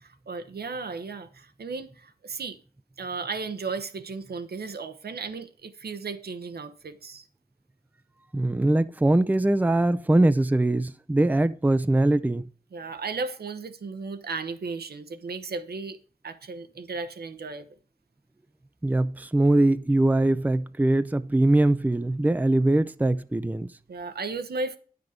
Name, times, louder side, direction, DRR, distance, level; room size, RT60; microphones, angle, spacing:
voice 1, 0.0-2.6 3.0-7.2 12.7-16.0 16.2-17.7 23.9-24.8, right 4 dB, 85° right, 0.9 m, -35 dB
voice 2, 8.3-12.4 18.8-23.7, right 1 dB, 10° right, 0.5 m, -22 dB
9.4 x 6.0 x 4.9 m
cardioid pair, 55°, 16 cm